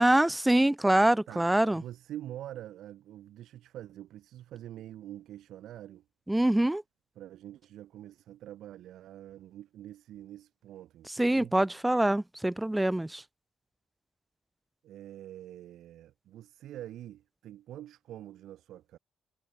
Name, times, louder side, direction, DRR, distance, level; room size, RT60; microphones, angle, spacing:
voice 1, 0.0-1.8 6.3-6.8 11.2-13.2, right 1 dB, 10° right, 0.3 m, -24 dB
voice 2, 1.3-6.0 7.2-11.5 14.8-19.0, right 12 dB, 80° right, 5.3 m, -45 dB
cardioid pair, 90°, 0 cm